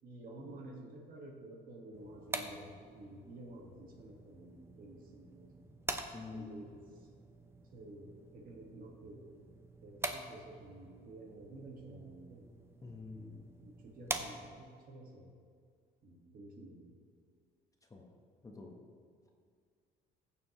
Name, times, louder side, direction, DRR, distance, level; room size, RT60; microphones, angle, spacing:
voice 1, 0.0-5.6 6.3-7.1 7.7-9.3 9.8-12.5 13.1-15.3 16.0-16.9, right 1 dB, 55° right, 0 dB, 2.1 m, -51 dB
sound 1, 1.9-14.8, right 2 dB, 15° right, 0.7 m, -46 dB
voice 2, 6.1-6.5 12.8-13.4 17.9-18.0 18.4-18.7, left 4 dB, 20° left, 1 dB, 1.3 m, -47 dB
15.0 x 7.0 x 3.3 m, 2.1 s
cardioid pair, 110°, 17 cm